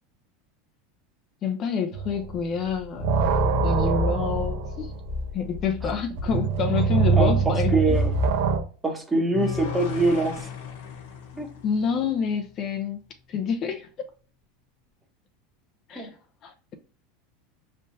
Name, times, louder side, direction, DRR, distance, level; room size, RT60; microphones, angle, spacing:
voice 1, 1.4-3.3 3.6-4.9 5.3-8.0 9.4-9.5 11.3-13.0 13.3-13.9 15.9-16.1 16.4-16.5, left 6 dB, 40° left, 0.7 m, -28 dB
sound 1, 1.9-2.4 2.7-8.6, right 4 dB, 75° right, 1.0 m, -24 dB
voice 2, 7.2-8.1 8.8-10.5 11.4-11.5 15.9-16.1, right 2 dB, 15° right, 1.2 m, -24 dB
sound 2, 9.3-12.5, left 7 dB, 80° left, 1.1 m, -36 dB
5.2 x 3.3 x 2.7 m
hypercardioid pair, 105°, 0 cm